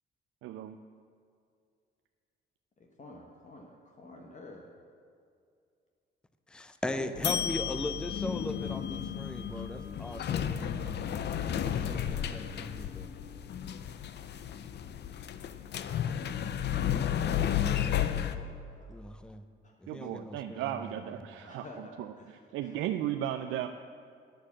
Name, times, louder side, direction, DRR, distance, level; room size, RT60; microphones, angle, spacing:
voice 1, 0.4-0.8 19.9-22.1 22.5-23.7, right 11 dB, 90° right, 7 dB, 0.4 m, -35 dB
voice 2, 2.8-4.7 6.9-7.2 17.6-18.9 19.6-19.7 20.1-20.2 21.4-22.8, left 2 dB, 40° left, 1 dB, 1.1 m, -50 dB
voice 3, 6.5-13.1 18.9-19.4 19.8-21.3, left 1 dB, 5° left, 10 dB, 0.5 m, -39 dB
sound 1, 7.2-18.4, left 9 dB, 60° left, 0.6 m, -33 dB
9.7 x 6.6 x 7.3 m, 2.3 s
cardioid pair, 90°, 20 cm